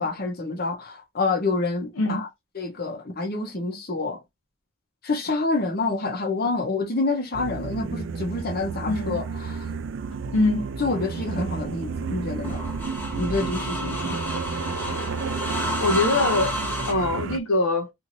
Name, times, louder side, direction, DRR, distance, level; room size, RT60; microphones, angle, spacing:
voice 1, 0.0-2.3 2.5-4.2 5.0-9.7 10.8-12.6 13.2-14.2, left 3 dB, 45° left, 0.8 m, -27 dB
sound 1, 7.3-17.4, right 5 dB, 65° right, 0.4 m, -31 dB
voice 2, 8.9-9.2 10.3-10.6 15.8-16.6 16.9-17.9, left 2 dB, 85° left, 0.7 m, -23 dB
sound 2, 11.5-16.9, left 1 dB, 10° left, 0.6 m, -31 dB
2.6 x 2.6 x 3.0 m
head